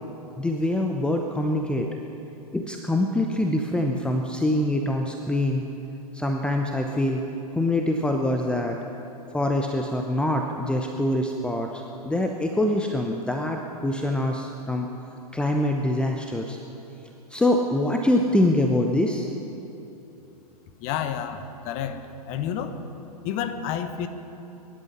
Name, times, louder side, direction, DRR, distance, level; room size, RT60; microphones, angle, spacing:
voice 1, 0.4-2.0 2.5-5.7 6.1-7.3 7.5-8.8 9.3-14.9 15.3-16.6 17.3-19.3, left 1 dB, 5° left, 2 dB, 0.8 m, -24 dB
voice 2, 20.8-22.8 23.2-24.1, left 9 dB, 35° left, 9 dB, 1.2 m, -30 dB
22.5 x 11.5 x 5.6 m, 2.9 s
figure-of-eight pair, 105°, 20 cm